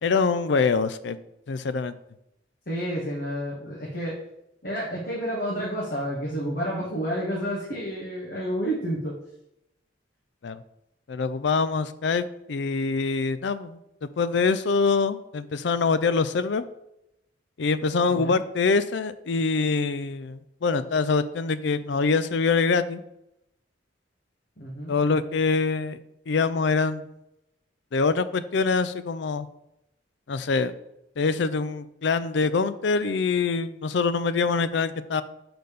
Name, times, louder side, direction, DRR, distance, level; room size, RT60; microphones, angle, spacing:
voice 1, 0.0-1.2 1.5-1.9 10.4-10.6 11.1-16.6 17.6-23.0 24.9-26.0 26.3-27.1 27.9-29.5 30.3-30.7 31.2-35.2, left 4 dB, 65° left, 14 dB, 0.4 m, -24 dB
voice 2, 2.7-4.2 4.6-9.1 18.1-18.4 24.6-24.9, equal, 50° left, -5 dB, 1.5 m, -30 dB
6.6 x 4.0 x 5.2 m, 0.84 s
head